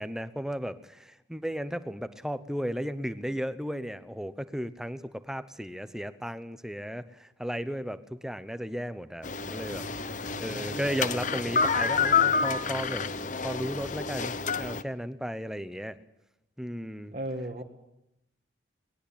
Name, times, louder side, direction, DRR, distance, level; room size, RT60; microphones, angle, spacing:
voice 1, 0.0-9.9 10.4-13.1 13.4-16.0 16.6-17.1, equal, 5° right, 12 dB, 0.9 m, -35 dB
sound 1, 9.2-14.8, left 5 dB, 40° left, 0.9 m, -28 dB
voice 2, 9.7-10.9 17.1-17.6, right 1 dB, 40° right, 2 dB, 1.7 m, -39 dB
23.5 x 20.5 x 8.7 m, 0.87 s
head